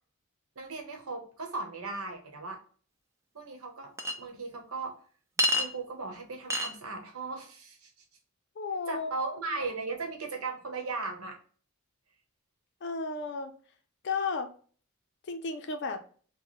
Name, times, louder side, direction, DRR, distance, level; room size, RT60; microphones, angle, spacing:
voice 1, 0.6-2.6 3.3-3.9 4.2-4.9 5.6-7.9 8.9-11.4, right 3 dB, 85° right, 3 dB, 1.0 m, -37 dB
Chink clink, 4.0-4.1 5.4-5.7 6.5-6.7, left 1 dB, 15° right, 0.4 m, -26 dB
voice 2, 8.6-9.3 12.8-13.5 14.0-14.5 15.3-16.0, left 4 dB, 55° left, 7 dB, 0.5 m, -33 dB
4.1 x 2.2 x 3.0 m, 0.43 s
head